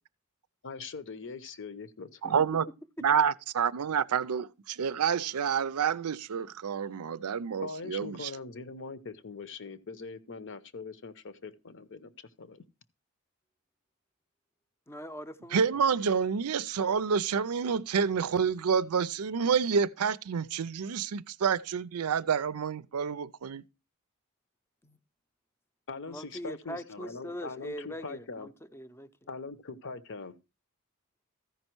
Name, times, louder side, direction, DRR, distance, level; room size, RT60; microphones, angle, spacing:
voice 1, 0.6-2.4 7.6-12.1 12.4-12.6 25.9-28.5 29.3-30.4, left 4 dB, 60° left, 0.8 m, -42 dB
voice 2, 2.2-2.7 3.0-8.3 15.5-23.6, right 6 dB, 85° right, 0.5 m, -28 dB
voice 3, 14.9-16.0 24.8-25.0 26.1-29.1, equal, 10° left, 0.6 m, -42 dB
14.0 x 5.4 x 4.5 m
head